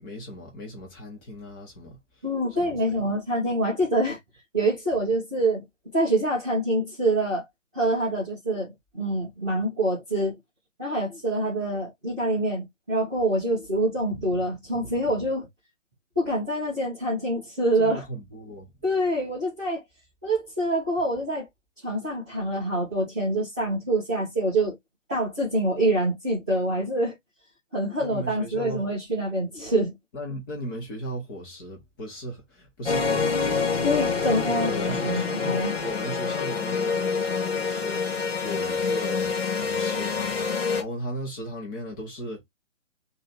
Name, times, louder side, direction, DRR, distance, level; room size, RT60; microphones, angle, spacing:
voice 1, 0.0-2.0 2.6-3.0 17.7-18.7 28.0-28.8 30.1-33.7 34.3-40.4 40.7-42.4, equal, 15° left, 1.0 m, -37 dB
voice 2, 2.2-4.2 4.5-5.6 5.9-7.5 7.7-10.3 10.8-15.5 16.2-18.0 18.8-19.8 20.2-21.5 21.8-24.8 25.1-27.2 27.7-29.9 33.8-34.7 35.0-35.7, right 1 dB, 5° right, 0.5 m, -26 dB
sound 1, 32.9-40.8, left 5 dB, 50° left, 1.0 m, -26 dB
3.1 x 2.7 x 4.2 m
figure-of-eight pair, 140°, 38 cm